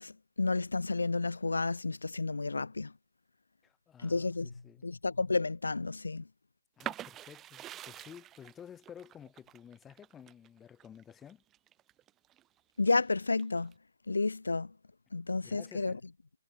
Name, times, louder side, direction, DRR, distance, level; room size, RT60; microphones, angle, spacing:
voice 1, 0.0-2.9 4.0-4.5 4.8-6.2 12.8-13.7 14.1-14.7 15.1-15.9, left 3 dB, 85° left, 0.8 m, -31 dB
voice 2, 3.6-4.8 6.8-11.4 15.2-16.0, left 8 dB, 10° left, 4.1 m, -52 dB
sound 1, 6.8-12.4 12.9-13.7, right 12 dB, 15° right, 2.8 m, -45 dB
figure-of-eight pair, 145°, 0 cm